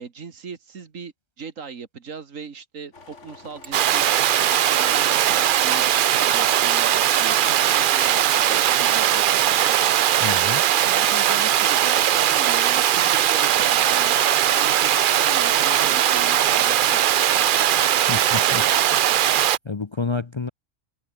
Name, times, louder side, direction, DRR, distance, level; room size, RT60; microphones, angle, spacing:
voice 1, 0.0-9.8 10.8-14.2 14.5-17.0 17.3-17.6, right 6 dB, 80° right, 2.1 m, -38 dB
sound 1, 2.9-8.2, left 4 dB, 65° left, 2.8 m, -46 dB
sound 2, 3.6-3.8 4.2-4.3 4.5-4.8 5.2-5.6 6.4-6.6 7.0-8.0 8.6-9.1 9.6-9.8 10.7-11.1 11.5-11.7 12.7-13.1 13.9-14.0 14.6-15.5 16.4-16.6 17.4-17.5 18.1-18.5 18.8-18.9 19.4-19.9, right 3 dB, 40° right, 2.9 m, -51 dB
Water, 3.7-19.6, right 11 dB, 60° right, 0.5 m, -19 dB
voice 2, 10.2-10.6 18.1-18.6 18.9-19.3 19.6-20.5, left 4 dB, 30° left, 0.5 m, -29 dB
omnidirectional pair, 1.4 m